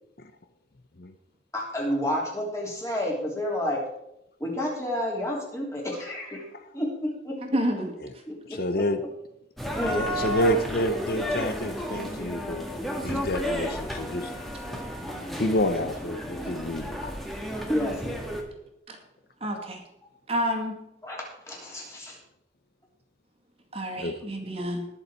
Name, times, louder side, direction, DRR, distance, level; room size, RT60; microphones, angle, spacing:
voice 1, 1.5-3.8 4.4-6.4 6.7-7.4 8.3-8.8 9.8-10.0 17.7-18.2 21.0-22.2, left 1 dB, 15° left, -2 dB, 3.3 m, -30 dB
voice 2, 7.4-7.9 18.9-19.0 19.4-19.8 20.3-20.8 23.7-24.9, equal, 35° right, 2 dB, 2.1 m, -29 dB
voice 3, 8.4-9.0 9.9-14.3 14.6-14.8 15.4-17.2 24.0-24.2, left 1 dB, 55° left, 9 dB, 0.8 m, -29 dB
sound 1, 9.6-18.4, equal, ahead, 1.7 m, -32 dB
20.0 x 6.9 x 4.6 m, 0.82 s
head